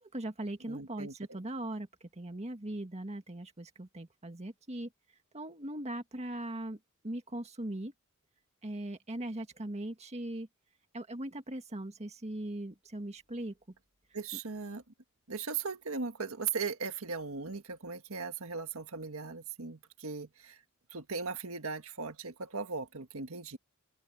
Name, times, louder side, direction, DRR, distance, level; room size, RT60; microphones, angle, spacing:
voice 1, 0.0-4.9 5.3-7.9 8.6-10.5 10.9-13.6, right 1 dB, 30° right, 1.8 m, -40 dB
voice 2, 0.7-1.4 14.1-14.8 15.3-20.6 20.9-23.6, right 5 dB, 70° right, 1.7 m, -38 dB
open air
head